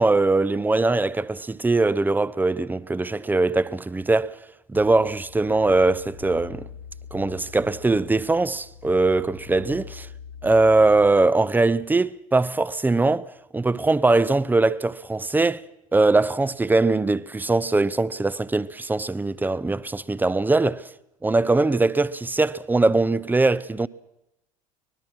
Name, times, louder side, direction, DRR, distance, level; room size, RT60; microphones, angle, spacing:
voice 1, 0.0-4.3 4.7-6.6 7.1-10.1 10.4-13.2 13.5-15.6 15.9-20.8 21.2-23.9, right 3 dB, 10° right, 0.7 m, -21 dB
sound 1, 4.7-11.1, left 8 dB, 80° left, 3.0 m, -44 dB
24.0 x 20.0 x 6.1 m
figure-of-eight pair, 65°, 18 cm